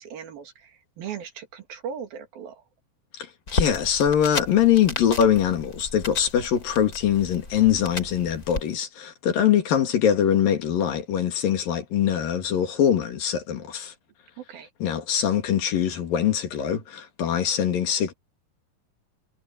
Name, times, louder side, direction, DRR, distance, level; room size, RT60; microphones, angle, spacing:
voice 1, 0.0-2.6 14.4-14.7, right 7 dB, 80° right, 4.2 m, -38 dB
voice 2, 3.5-13.9 14.8-18.1, left 9 dB, 70° left, 3.9 m, -23 dB
sound 1, 3.5-8.6, left 2 dB, 25° left, 3.8 m, -33 dB
omnidirectional pair, 4.2 m